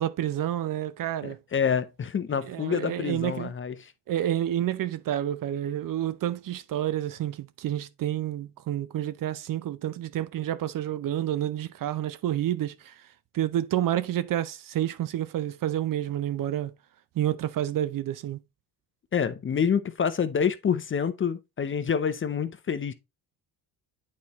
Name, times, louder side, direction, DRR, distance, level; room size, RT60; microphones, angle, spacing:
voice 1, 0.0-1.4 2.4-3.5 4.1-13.0 13.3-16.7 17.2-18.4, right 12 dB, 50° right, 0.6 m, -29 dB
voice 2, 1.2-3.9 19.1-22.9, left 7 dB, 30° left, 0.6 m, -27 dB
8.5 x 4.2 x 3.0 m
cardioid pair, 85°, 42 cm